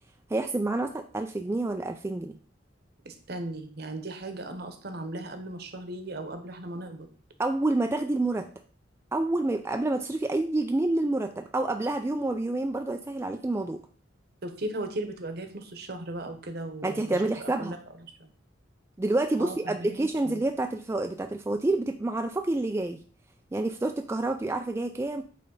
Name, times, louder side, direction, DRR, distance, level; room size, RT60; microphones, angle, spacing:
voice 1, 0.3-2.4 7.4-8.5 9.1-13.8 16.8-17.8 19.0-23.0 23.5-25.2, right 2 dB, 15° right, 5 dB, 0.3 m, -28 dB
voice 2, 3.0-7.1 14.4-17.8 18.2-18.3 19.4-20.4, right 1 dB, 55° right, 7 dB, 1.0 m, -37 dB
8.7 x 3.3 x 3.9 m, 0.42 s
head